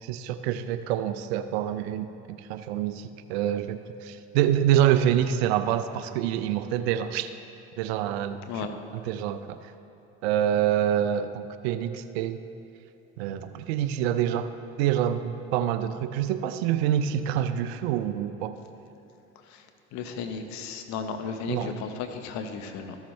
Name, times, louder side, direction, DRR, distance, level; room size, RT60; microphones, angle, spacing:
voice 1, 0.0-7.3 7.8-9.6 10.2-12.4 13.2-14.5 14.8-18.5 21.5-21.7, right 10 dB, 80° right, 11 dB, 0.6 m, -26 dB
voice 2, 19.9-23.0, left 5 dB, 60° left, 7 dB, 1.0 m, -34 dB
14.0 x 7.2 x 3.2 m, 2.9 s
hypercardioid pair, 75°, 31 cm